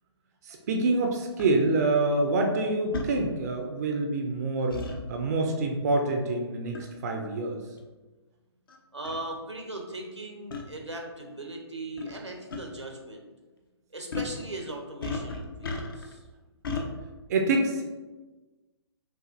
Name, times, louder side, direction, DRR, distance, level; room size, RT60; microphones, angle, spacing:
voice 1, 0.4-4.8 5.1-7.6 17.3-17.9, right 2 dB, 35° right, 3 dB, 0.4 m, -26 dB
sound 1, 1.4-1.5 2.9-3.1 4.7-5.0 6.7-7.0 7.8-7.9 8.7-8.8 9.0-9.2 10.5-10.6 12.0-12.2 12.5-12.6 14.1-14.4 15.0-16.1 16.6-16.9, left 4 dB, 50° left, 0.6 m, -33 dB
voice 2, 8.9-13.2 13.9-16.2, right 2 dB, 90° right, 1 dB, 0.8 m, -39 dB
6.0 x 2.4 x 2.5 m, 1.2 s
figure-of-eight pair, 130°, 14 cm